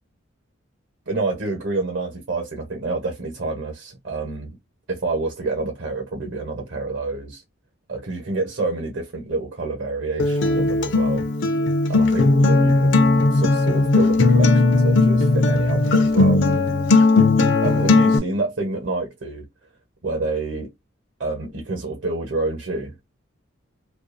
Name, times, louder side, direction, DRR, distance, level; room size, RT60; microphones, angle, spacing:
voice 1, 1.1-4.6 4.9-7.4 7.9-11.3 11.9-16.4 17.6-19.5 20.0-20.7 21.2-22.9, right 3 dB, 60° right, 1.0 m, -28 dB
Acoustic guitar, 10.2-18.2, left 3 dB, 60° left, 0.5 m, -17 dB
2.5 x 2.4 x 2.4 m
head